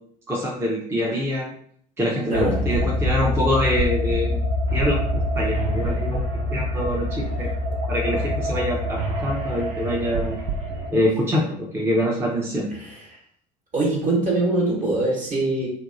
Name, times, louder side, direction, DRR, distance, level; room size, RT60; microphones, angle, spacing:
voice 1, 0.3-1.5 2.0-4.3 4.7-5.0 5.4-7.5 7.9-10.4 10.9-12.7, left 1 dB, 10° right, -3 dB, 0.6 m, -24 dB
voice 2, 2.3-2.7 12.7-13.2 13.7-15.7, right 2 dB, 40° right, -3 dB, 1.2 m, -23 dB
sound 1, 2.3-10.9, equal, 55° right, 0.5 m, -25 dB
2.6 x 2.2 x 2.5 m, 0.63 s
hypercardioid pair, 70°, 21 cm